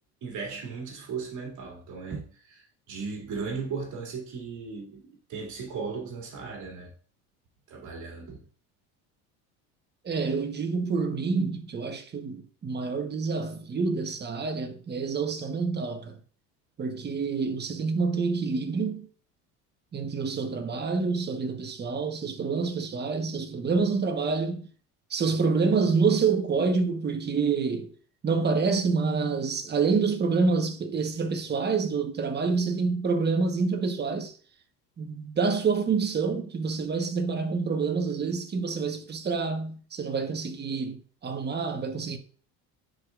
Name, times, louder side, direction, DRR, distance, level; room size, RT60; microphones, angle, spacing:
voice 1, 0.2-6.9 7.7-8.4, right 5 dB, 55° right, 2.6 m, -36 dB
voice 2, 10.0-16.2 16.8-19.1 19.9-24.6 25.1-27.9 28.2-34.3 35.0-42.2, right 4 dB, 30° right, 1.2 m, -27 dB
10.0 x 4.9 x 2.5 m
supercardioid pair, 105°, 35 cm